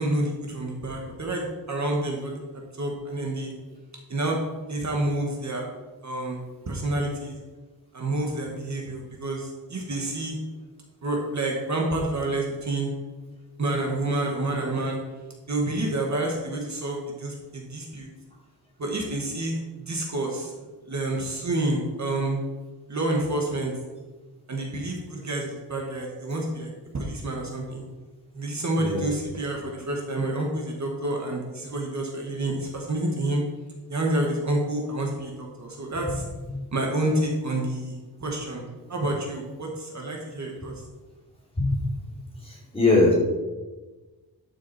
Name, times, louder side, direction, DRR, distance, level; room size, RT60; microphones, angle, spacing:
voice 1, 0.0-2.3 2.8-3.5 4.1-4.4 4.7-5.7 6.0-7.4 7.9-10.4 11.0-12.9 13.6-15.0 15.5-18.1 18.8-20.5 20.8-22.4 22.9-23.7 24.5-27.8 28.3-33.4 33.9-36.2 36.7-40.7, right 1 dB, 45° right, 0 dB, 1.6 m, -28 dB
voice 2, 42.4-43.1, left 2 dB, 15° left, -4 dB, 2.9 m, -21 dB
12.0 x 6.3 x 4.2 m, 1.2 s
wide cardioid pair, 150°, 38 cm